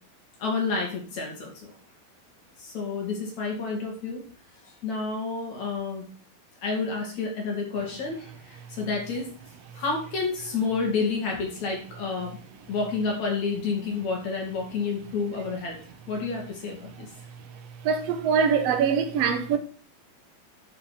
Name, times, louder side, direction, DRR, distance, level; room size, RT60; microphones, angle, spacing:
voice 1, 0.4-1.7 2.6-4.2 4.6-6.0 6.6-9.3 9.8-12.4 12.7-15.8 16.1-17.1, left 4 dB, 50° left, 3.6 m, -30 dB
voice 2, 17.8-19.6, right 6 dB, 75° right, 1.4 m, -23 dB
11.5 x 5.6 x 5.1 m
omnidirectional pair, 4.2 m